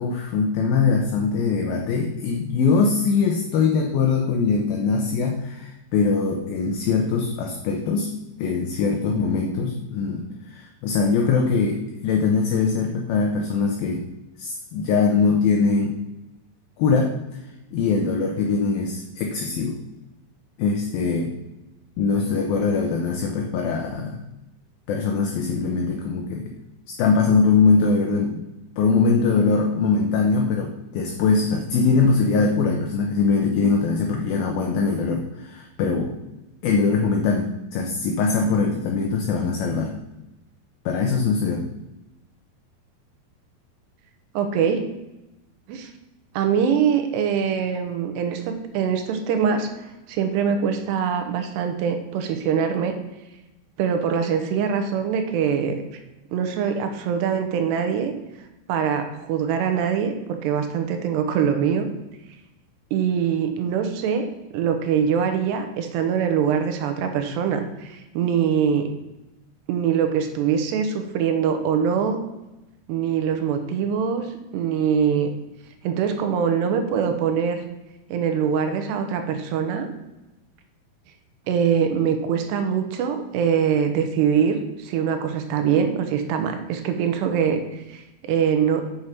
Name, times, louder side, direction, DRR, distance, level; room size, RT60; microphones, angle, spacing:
voice 1, 0.0-8.1 8.4-14.0 14.4-16.0 16.8-17.1 17.7-19.8 20.6-21.3 22.0-24.2 24.9-26.5 26.9-28.4 28.8-36.2 36.6-39.9 40.9-41.7, left 4 dB, 75° left, 2 dB, 2.2 m, -22 dB
voice 2, 44.3-44.8 45.7-45.9 46.3-53.0 53.8-55.8 56.3-58.1 58.7-61.9 62.9-64.3 64.5-68.9 69.7-72.2 72.9-75.3 75.8-77.6 78.1-79.9 81.5-88.9, right 7 dB, 75° right, 6 dB, 2.8 m, -23 dB
7.3 x 6.5 x 5.7 m, 0.98 s
omnidirectional pair, 5.2 m